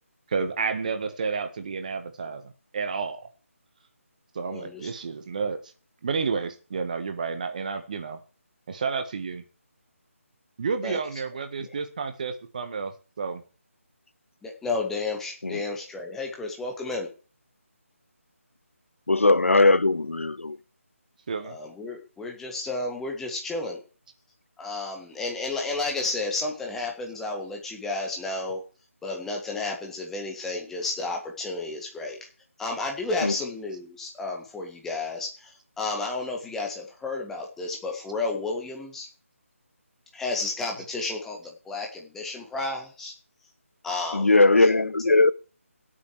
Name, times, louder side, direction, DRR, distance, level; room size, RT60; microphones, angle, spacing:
voice 1, 0.3-3.2 4.3-5.6 6.0-8.2 8.7-9.4 10.6-13.4 21.3-21.6, right 5 dB, 35° right, 1.5 m, -30 dB
voice 2, 4.5-4.9 10.8-11.0 14.4-17.1 21.4-23.8 24.6-28.6 29.0-32.2 32.6-39.1 40.1-43.1 43.8-45.3, left 3 dB, 5° left, 1.8 m, -32 dB
voice 3, 19.1-20.6 33.2-33.3 44.1-45.3, left 2 dB, 65° left, 0.6 m, -19 dB
17.0 x 8.4 x 4.8 m
figure-of-eight pair, 155°, 8 cm